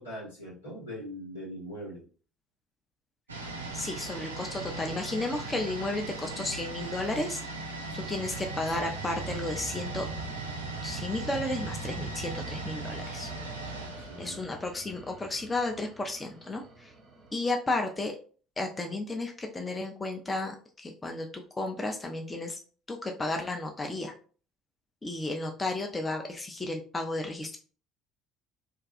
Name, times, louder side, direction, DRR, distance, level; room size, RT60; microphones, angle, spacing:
voice 1, 0.0-2.0 7.9-8.3 13.7-14.4, equal, 85° left, -8 dB, 1.2 m, -42 dB
sound 1, 3.3-15.0 15.3-15.4, right 2 dB, 85° right, 0.4 m, -38 dB
voice 2, 3.7-7.4 7.7-10.1 10.8-13.3 14.2-16.9 17.3-18.2 18.6-22.6 22.9-24.1 25.0-27.6, left 2 dB, 20° left, 3 dB, 0.5 m, -33 dB
sound 2, 7.6-17.3, right 4 dB, 35° right, 0.7 m, -44 dB
2.4 x 2.3 x 2.6 m, 0.40 s
figure-of-eight pair, 55°, 0 cm